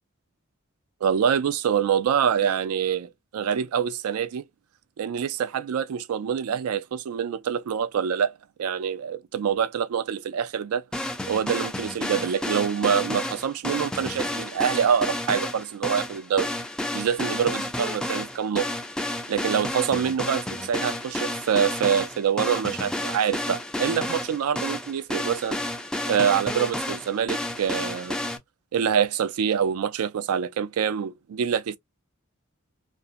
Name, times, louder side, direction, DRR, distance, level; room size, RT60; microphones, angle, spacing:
voice 1, 1.0-4.4 5.0-8.3 8.6-10.8 11.3-16.5 16.9-18.7 19.3-25.6 26.1-28.2 28.7-31.8, right 8 dB, 90° right, 0.4 m, -25 dB
sound 1, 10.9-28.4, left 1 dB, 5° left, 0.3 m, -31 dB
2.6 x 2.0 x 2.5 m
head